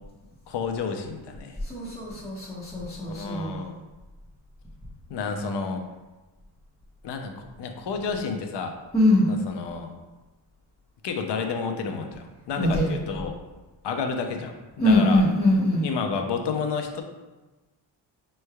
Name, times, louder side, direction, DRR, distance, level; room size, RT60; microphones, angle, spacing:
voice 1, 0.5-1.6 3.1-3.7 5.1-5.9 7.0-8.8 9.3-9.9 11.0-13.4 13.8-15.2 15.8-17.0, left 5 dB, 60° left, 4 dB, 0.6 m, -30 dB
voice 2, 1.6-3.7 8.9-9.4 12.6-13.0 14.8-15.9, left 1 dB, 5° left, -9 dB, 0.6 m, -22 dB
5.4 x 3.2 x 2.3 m, 1.1 s
cardioid pair, 115°, 47 cm